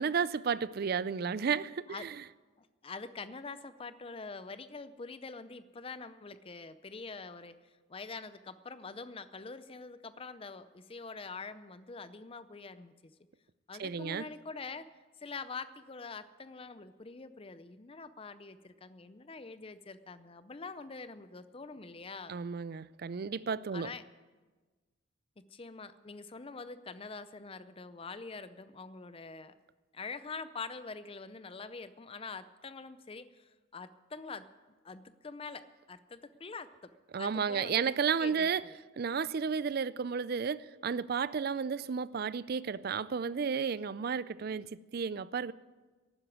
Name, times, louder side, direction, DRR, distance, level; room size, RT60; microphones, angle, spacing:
voice 1, 0.0-2.2 13.8-14.3 22.3-23.9 37.1-38.6 39.0-45.5, right 6 dB, 45° right, 0.4 m, -32 dB
voice 2, 2.6-13.1 13.7-14.8 15.2-22.4 23.7-24.0 25.5-29.5 29.9-34.4 34.8-36.9 37.2-38.8, left 4 dB, 25° left, 0.5 m, -45 dB
12.0 x 9.8 x 9.3 m
head